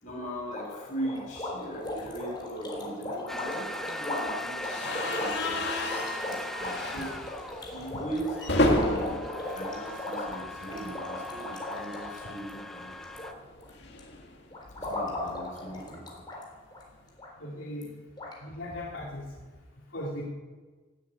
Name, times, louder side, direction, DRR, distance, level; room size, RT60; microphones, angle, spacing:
voice 1, 0.0-4.7 5.2-7.2 7.7-9.2 9.5-13.2 14.8-16.2, right 1 dB, 40° left, -2 dB, 6.5 m, -40 dB
sound 1, 0.5-13.3 13.6-14.0 14.5-16.4 16.7-16.8 17.2-17.3 17.8-17.9 18.2-18.3, left 2 dB, 25° left, 3.9 m, -37 dB
sound 2, 3.3-13.3, equal, ahead, 0.7 m, -40 dB
sound 3, 4.6-10.7 11.0-11.2 11.4-11.5 12.8-15.1, left 1 dB, 60° left, 2.1 m, -32 dB
voice 2, 17.4-17.9 18.4-19.2 19.9-20.2, left 1 dB, 75° left, -4 dB, 2.9 m, -37 dB
18.5 x 9.2 x 8.5 m, 1.4 s
head